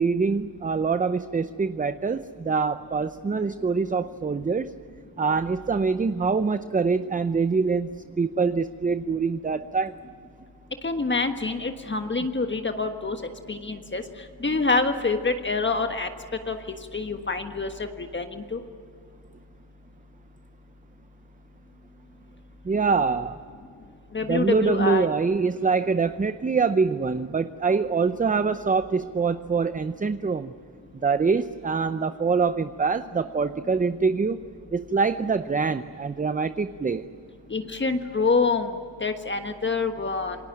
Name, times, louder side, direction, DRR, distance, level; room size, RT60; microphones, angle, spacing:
voice 1, 0.0-4.7 5.2-9.9 22.6-23.4 24.3-30.5 31.0-34.4 34.7-37.1, right 4 dB, 20° right, 11 dB, 0.6 m, -24 dB
voice 2, 10.8-13.2 13.5-14.0 14.4-16.1 16.5-18.6 24.1-25.1 37.5-38.7 39.0-40.4, left 4 dB, 25° left, 6 dB, 1.4 m, -26 dB
28.0 x 20.5 x 9.1 m, 2.4 s
cardioid pair, 110°, 42 cm